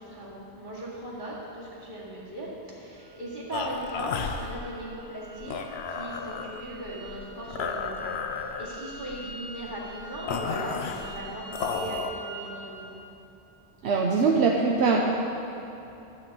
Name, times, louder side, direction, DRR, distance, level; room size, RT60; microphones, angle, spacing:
voice 1, 0.0-5.6 5.9-12.9, right 1 dB, 50° right, -7 dB, 2.3 m, -38 dB
sound 1, 3.0-12.6, right 2 dB, 30° right, 1.5 m, -45 dB
sound 2, 3.5-12.1, left 5 dB, 70° left, 0.9 m, -34 dB
voice 2, 13.8-15.0, right 4 dB, 80° right, -1 dB, 1.0 m, -22 dB
12.5 x 4.3 x 7.7 m, 2.9 s
omnidirectional pair, 1.1 m